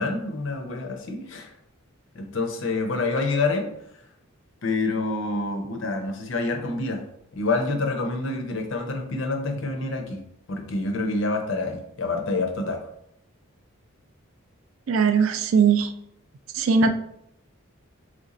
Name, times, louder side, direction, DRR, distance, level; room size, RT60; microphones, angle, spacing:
voice 1, 0.0-1.5 2.1-3.7 4.6-7.0 7.3-10.2 10.5-12.9, left 3 dB, 55° left, 4 dB, 0.6 m, -27 dB
voice 2, 14.9-15.9 16.5-16.9, right 5 dB, 65° right, 9 dB, 0.3 m, -19 dB
3.1 x 2.6 x 4.0 m, 0.76 s
head